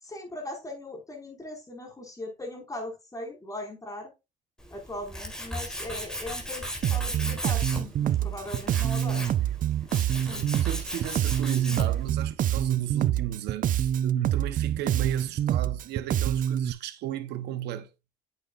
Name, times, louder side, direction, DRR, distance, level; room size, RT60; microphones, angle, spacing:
voice 1, 0.0-4.1 4.7-9.3 10.3-10.4, left 1 dB, 20° left, 5.2 m, -39 dB
Tools, 4.6-12.1, equal, 5° left, 4.2 m, -37 dB
Bass guitar, 6.8-16.7, right 11 dB, 50° right, 0.6 m, -26 dB
voice 2, 10.2-17.9, right 12 dB, 80° right, 1.0 m, -35 dB
9.3 x 8.1 x 2.5 m
cardioid pair, 90°, 17 cm